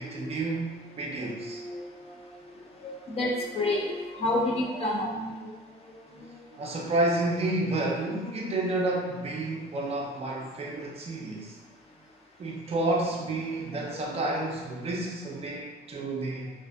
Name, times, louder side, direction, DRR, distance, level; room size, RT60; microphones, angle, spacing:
voice 1, 0.0-1.6 6.6-11.6 12.4-16.5, right 2 dB, 35° right, -2 dB, 0.5 m, -30 dB
voice 2, 1.2-1.9 2.8-5.5 6.1-6.5 13.5-15.0 16.1-16.2, left 1 dB, 35° left, -3 dB, 0.5 m, -31 dB
2.5 x 2.4 x 2.3 m, 1.4 s
cardioid pair, 110°, 17 cm